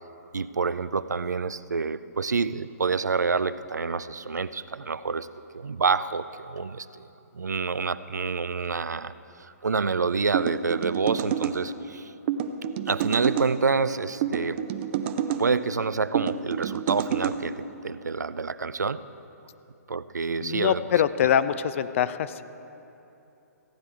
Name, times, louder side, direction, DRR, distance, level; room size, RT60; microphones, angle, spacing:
voice 1, 0.3-5.3 5.5-7.1 7.3-9.1 9.4-12.1 12.9-14.6 15.4-19.0 19.9-20.8, right 4 dB, 90° right, 15 dB, 0.4 m, -27 dB
sound 1, 10.3-11.6 12.3-13.5 14.2-15.4 16.1-17.4, right 9 dB, 40° right, 0.6 m, -28 dB
voice 2, 20.4-22.4, left 9 dB, 50° left, 14 dB, 0.4 m, -24 dB
15.0 x 9.7 x 4.6 m, 3.0 s
figure-of-eight pair, 130°, 9 cm